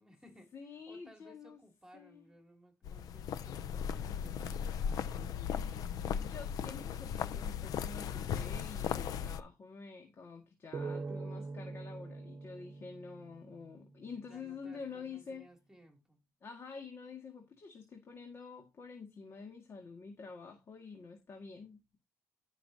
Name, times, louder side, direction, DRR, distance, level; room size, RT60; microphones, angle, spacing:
voice 1, 0.0-0.5 0.9-5.9 14.1-16.2, equal, 10° right, 2.9 m, -60 dB
voice 2, 0.5-1.6 1.9-2.2 5.4-15.4 16.4-22.0, left 5 dB, 45° left, 1.9 m, -48 dB
sound 1, 2.8-9.4, left 8 dB, 75° left, 0.6 m, -37 dB
sound 2, 10.7-14.1, right 4 dB, 45° right, 1.0 m, -43 dB
15.5 x 5.9 x 2.8 m
cardioid pair, 105°, 6 cm